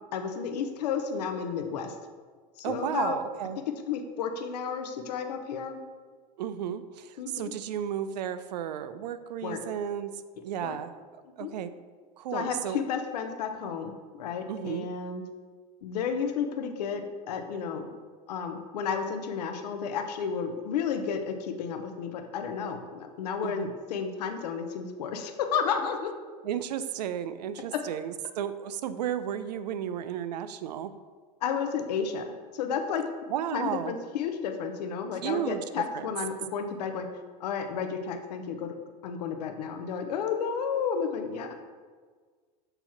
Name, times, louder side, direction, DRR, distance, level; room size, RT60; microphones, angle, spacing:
voice 1, 0.1-1.9 2.6-3.2 3.9-5.8 7.2-7.5 9.4-9.6 10.6-10.8 11.2-11.5 12.3-15.2 15.8-18.0 18.3-26.1 31.4-32.2 32.5-33.0 33.5-37.1 37.4-38.7 39.0-41.5, left 6 dB, 80° left, 5 dB, 0.8 m, -32 dB
voice 2, 2.6-3.6 6.4-10.1 10.4-10.9 11.4-11.7 12.2-12.8 14.5-14.9 23.4-23.7 26.4-30.9 33.3-33.9 35.2-35.6 35.9-36.1, right 9 dB, 85° right, 12 dB, 0.5 m, -33 dB
6.9 x 2.9 x 5.7 m, 1.5 s
supercardioid pair, 130°, 21 cm